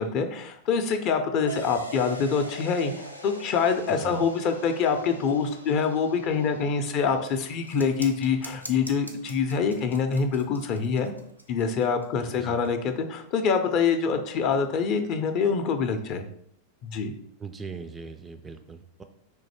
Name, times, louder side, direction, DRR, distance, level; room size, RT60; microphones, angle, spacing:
voice 1, 0.0-11.1 11.5-16.3 16.8-17.1, left 5 dB, 40° left, 7 dB, 0.5 m, -25 dB
sound 1, 1.5-10.5, right 1 dB, 90° left, 0.4 m, -45 dB
voice 2, 3.9-4.2 12.4-12.6 17.4-19.0, right 5 dB, 15° right, 8 dB, 0.3 m, -40 dB
sound 2, 7.6-12.7, right 1 dB, 90° right, 0.5 m, -44 dB
3.8 x 2.6 x 4.2 m, 0.68 s
figure-of-eight pair, 90°, 0 cm